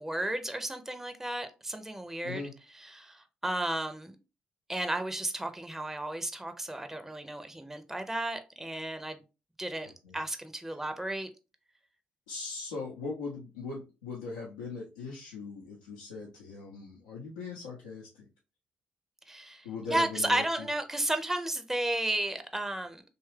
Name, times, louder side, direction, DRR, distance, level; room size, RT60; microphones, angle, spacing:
voice 1, 0.0-2.4 2.7-4.2 4.7-9.2 9.6-11.3 19.3-23.0, right 1 dB, 10° right, 0.5 m, -33 dB
voice 2, 12.3-18.3 19.6-20.7, left 4 dB, 85° left, 0.6 m, -40 dB
2.9 x 2.3 x 3.2 m
hypercardioid pair, 45°, 4 cm